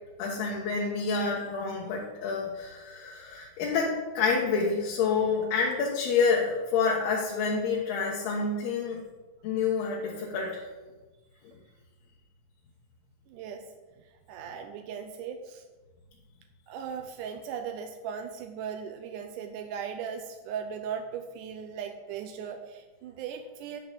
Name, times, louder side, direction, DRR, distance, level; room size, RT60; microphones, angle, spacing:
voice 1, 0.2-9.0 9.4-10.7 11.4-11.5, left 5 dB, 85° left, -3 dB, 3.3 m, -28 dB
voice 2, 13.3-13.6 14.3-15.6 16.7-23.8, right 7 dB, 80° right, 6 dB, 1.8 m, -38 dB
12.0 x 4.4 x 7.3 m, 1.2 s
omnidirectional pair, 4.4 m